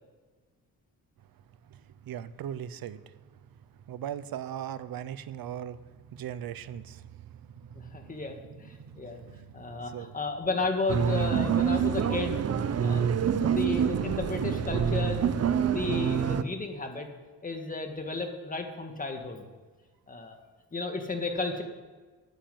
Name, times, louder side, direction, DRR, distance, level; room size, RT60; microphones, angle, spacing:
voice 1, 2.1-3.0 3.9-5.8 6.1-8.2 8.8-10.1, right 10 dB, 75° right, 14 dB, 0.8 m, -39 dB
voice 2, 7.8-9.2 9.5-12.4 12.8-17.1 17.4-19.4 20.1-20.5 20.7-21.6, left 3 dB, 25° left, 4 dB, 2.0 m, -33 dB
sound 1, 10.9-16.4, right 8 dB, 45° right, 0.7 m, -26 dB
14.5 x 9.0 x 9.4 m, 1.3 s
wide cardioid pair, 150°, 36 cm